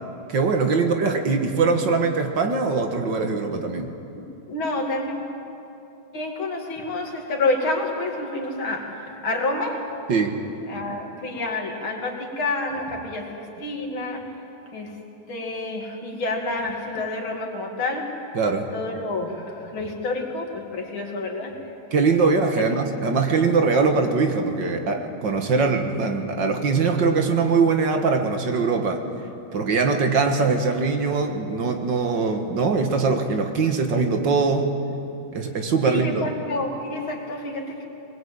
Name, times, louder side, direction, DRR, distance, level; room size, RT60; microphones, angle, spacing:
voice 1, 0.3-3.9 10.1-10.4 18.4-18.7 21.9-29.0 29.5-34.7 35.3-36.2, right 4 dB, 60° right, 5 dB, 2.1 m, -22 dB
voice 2, 4.1-5.1 6.1-9.9 10.7-14.3 14.7-15.0 15.3-18.1 18.7-21.6 22.2-22.3 22.5-22.6 35.8-37.9, left 2 dB, 75° left, 1 dB, 3.3 m, -28 dB
21.5 x 20.0 x 8.7 m, 2.8 s
omnidirectional pair, 2.2 m